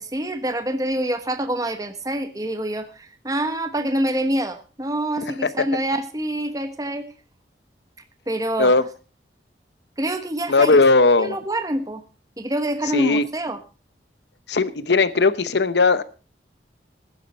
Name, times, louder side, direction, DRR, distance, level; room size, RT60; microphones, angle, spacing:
voice 1, 0.0-7.1 8.3-8.9 10.0-10.8 11.2-12.0 12.4-13.6, right 1 dB, 20° right, 8 dB, 1.2 m, -26 dB
voice 2, 10.5-11.4 12.9-13.2 14.5-16.0, left 3 dB, 75° left, 15 dB, 0.9 m, -17 dB
14.5 x 11.5 x 4.3 m, 0.35 s
head